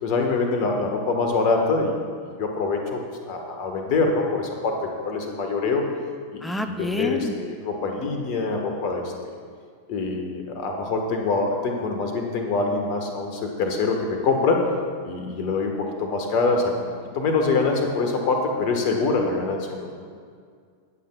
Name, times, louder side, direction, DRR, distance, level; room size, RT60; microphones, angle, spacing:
voice 1, 0.0-5.8 6.3-9.1 9.9-14.6 15.0-16.9 17.1-19.9, left 3 dB, 45° left, 3 dB, 1.5 m, -25 dB
voice 2, 6.4-7.3, left 2 dB, 5° left, 7 dB, 0.7 m, -28 dB
20.5 x 7.5 x 2.4 m, 2.1 s
figure-of-eight pair, 90°, 0 cm